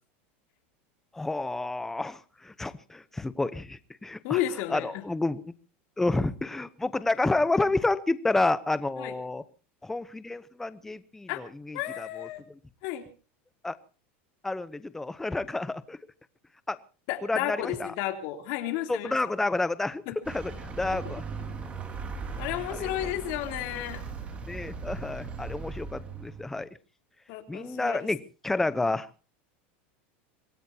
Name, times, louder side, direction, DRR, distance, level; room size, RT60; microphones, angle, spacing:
voice 1, 1.1-4.4 4.7-5.5 6.0-9.4 9.8-12.3 13.6-13.8 14.4-16.0 16.7-16.8 17.3-17.9 18.9-20.0 20.3-20.5 20.8-21.2 22.7-22.9 24.5-26.7 27.5-28.2 28.4-29.1, left 2 dB, 5° left, 14 dB, 0.9 m, -29 dB
voice 2, 4.2-5.0 9.0-9.1 11.3-11.4 11.7-12.4 12.8-13.1 17.1-19.3 20.0-20.2 20.8-21.0 22.4-24.0 27.3-28.1 28.8-28.9, left 13 dB, 50° left, 5 dB, 3.3 m, -33 dB
Vehicle, 20.2-26.6, right 4 dB, 20° right, 2.5 m, -38 dB
26.0 x 18.5 x 2.9 m, 0.36 s
supercardioid pair, 165°, 6 cm